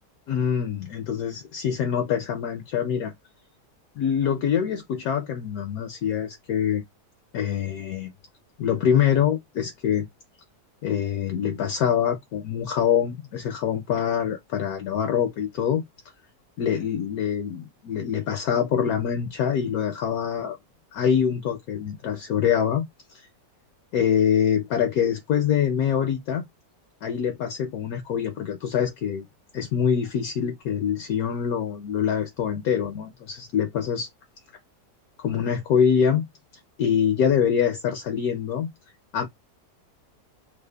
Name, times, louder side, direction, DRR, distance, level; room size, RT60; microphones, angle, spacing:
voice 1, 0.3-3.1 4.0-6.8 7.3-8.1 8.6-10.1 10.8-15.8 16.6-20.6 20.9-22.9 23.1-23.3 23.9-26.5 27.0-29.3 29.5-34.1 35.2-36.2 36.8-38.7 39.1-39.3, left 8 dB, 70° left, 0.9 m, -24 dB
3.2 x 2.0 x 2.2 m
omnidirectional pair, 1.8 m